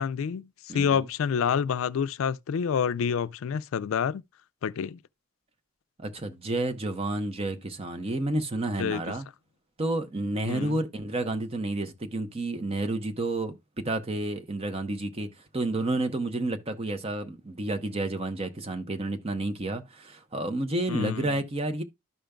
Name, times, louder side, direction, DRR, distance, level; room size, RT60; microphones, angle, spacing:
voice 1, 0.0-4.2 4.6-5.0 8.8-9.0 10.5-10.8 20.9-21.4, left 7 dB, 80° left, 0.4 m, -28 dB
voice 2, 0.7-1.1 6.0-9.3 9.8-13.6 13.8-15.3 15.5-21.8, right 2 dB, 30° right, 0.7 m, -30 dB
12.5 x 5.0 x 2.2 m
head